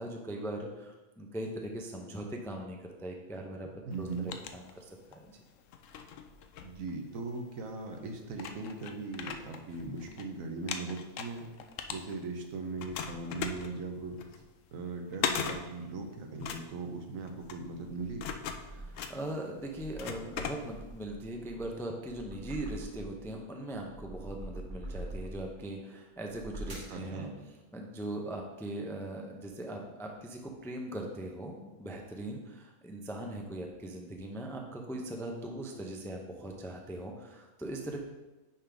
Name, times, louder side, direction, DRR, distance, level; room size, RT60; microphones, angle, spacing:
voice 1, 0.0-3.7 4.0-4.1 4.5-4.8 5.1-5.4 18.7-27.3 27.7-38.0, right 1 dB, 5° left, 1 dB, 0.3 m, -40 dB
sound 1, 3.9-5.2 5.7-7.4 8.0-8.1 8.3-10.2 10.5-12.5 12.8-21.1, left 7 dB, 70° left, 0.9 m, -39 dB
voice 2, 3.9-4.3 6.6-11.5 11.9-14.2 14.7-18.3 26.9-27.3, right 3 dB, 80° right, 4 dB, 1.2 m, -39 dB
sound 2, 17.2-19.1 19.6-23.3 23.7-25.6 26.2-27.0, right 1 dB, 55° right, 1.8 m, -45 dB
10.0 x 3.8 x 3.5 m, 1.1 s
omnidirectional pair, 1.4 m